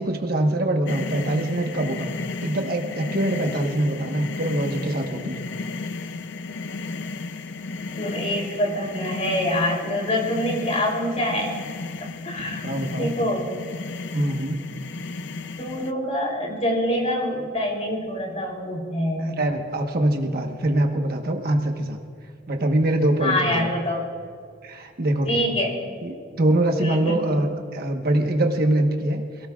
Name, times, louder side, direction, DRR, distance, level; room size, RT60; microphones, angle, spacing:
voice 1, 0.0-2.1 2.4-5.4 12.4-13.1 14.1-14.6 19.2-22.0 22.5-23.7 24.6-25.5 26.0-29.2, right 1 dB, 50° right, 3 dB, 1.3 m, -24 dB
sound 1, 0.9-15.9, left 3 dB, 60° left, 0.6 m, -34 dB
voice 2, 8.0-11.5 12.0-12.6 12.9-13.5 15.6-19.3 23.2-24.0 25.2-25.8 26.8-27.2, left 1 dB, 35° left, -1 dB, 3.3 m, -25 dB
27.0 x 18.0 x 2.4 m, 2.2 s
head